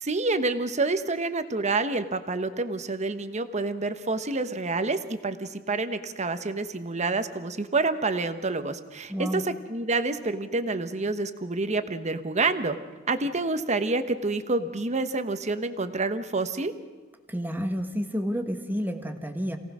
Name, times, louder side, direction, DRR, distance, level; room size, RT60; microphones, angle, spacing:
voice 1, 0.0-12.8 13.1-16.7, right 3 dB, 35° right, 10 dB, 1.1 m, -28 dB
voice 2, 9.1-9.4 17.3-19.6, equal, 10° right, 5 dB, 1.6 m, -30 dB
27.5 x 18.0 x 6.3 m, 1.3 s
head